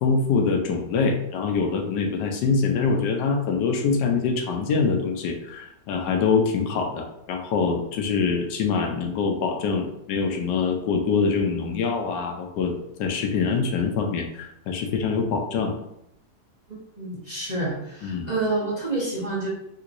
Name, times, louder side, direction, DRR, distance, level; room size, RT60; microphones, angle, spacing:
voice 1, 0.0-12.7 13.0-15.8 18.0-18.3, left 5 dB, 80° left, 3 dB, 1.2 m, -24 dB
voice 2, 16.7-19.5, right 2 dB, 35° right, -9 dB, 0.8 m, -28 dB
3.5 x 2.9 x 2.5 m, 0.79 s
omnidirectional pair, 1.9 m